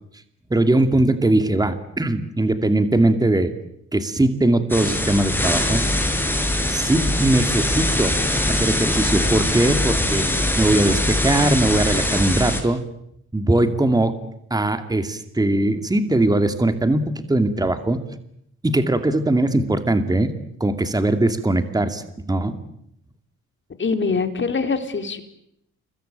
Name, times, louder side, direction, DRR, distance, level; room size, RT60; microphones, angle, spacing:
voice 1, 0.5-3.5 3.9-5.8 6.7-8.2 8.5-10.3 10.6-12.8 13.3-14.1 14.5-18.0 18.6-20.3 20.6-22.6, right 2 dB, 15° right, 9 dB, 2.4 m, -20 dB
sound 1, 4.7-12.6, left 1 dB, 5° left, 6.0 m, -22 dB
voice 2, 23.8-25.2, left 4 dB, 40° left, 7 dB, 4.0 m, -23 dB
29.0 x 22.5 x 9.0 m, 0.76 s
cardioid pair, 90°, 30 cm